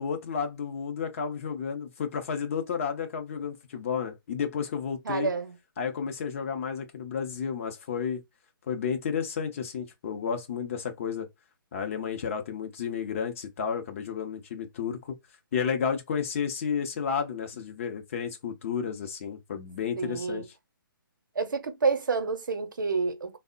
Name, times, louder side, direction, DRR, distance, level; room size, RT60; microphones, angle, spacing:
voice 1, 0.0-5.3 5.8-8.2 8.7-11.3 11.7-15.2 15.5-20.4, left 6 dB, 35° left, 0.6 m, -32 dB
voice 2, 5.0-5.5 20.0-20.4 21.3-23.4, right 4 dB, 60° right, 0.7 m, -28 dB
3.4 x 2.0 x 2.3 m
figure-of-eight pair, 135°, 12 cm